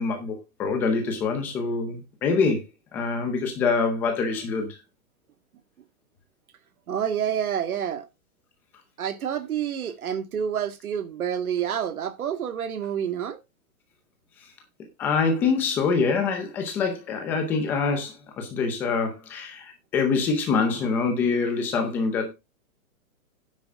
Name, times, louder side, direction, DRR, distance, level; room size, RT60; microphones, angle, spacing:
voice 1, 0.0-2.6 2.9-4.8 15.0-22.3, left 4 dB, 5° left, 0.6 m, -25 dB
voice 2, 6.9-8.1 9.0-13.4, right 8 dB, 85° right, 2.1 m, -28 dB
9.6 x 8.1 x 3.7 m
hypercardioid pair, 175°, 42 cm